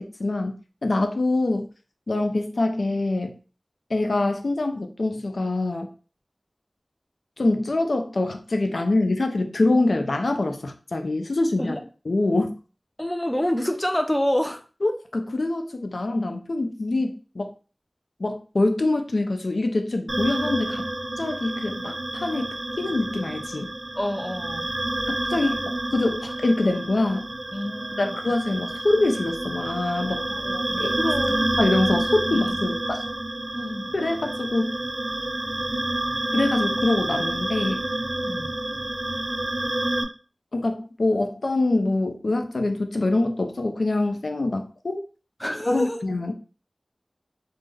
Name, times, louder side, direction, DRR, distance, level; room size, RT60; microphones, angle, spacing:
voice 1, 0.0-1.7 2.1-3.3 3.9-5.9 7.4-11.8 12.1-12.5 14.8-17.5 18.2-20.9 21.2-23.7 25.1-27.3 28.0-30.3 30.8-30.9 31.6-33.0 33.9-34.8 36.3-37.8 40.5-45.0 45.7-46.3, left 2 dB, 85° left, 5 dB, 0.4 m, -25 dB
voice 2, 13.0-14.6 24.0-24.7 27.5-28.1 30.3-31.6 32.3-32.6 33.5-33.9 38.2-38.5 45.4-46.0, left 1 dB, 15° left, 6 dB, 0.4 m, -28 dB
sound 1, 20.1-40.0, right 1 dB, 40° right, 0.4 m, -29 dB
3.3 x 2.0 x 3.4 m, 0.37 s
wide cardioid pair, 60°, 0 cm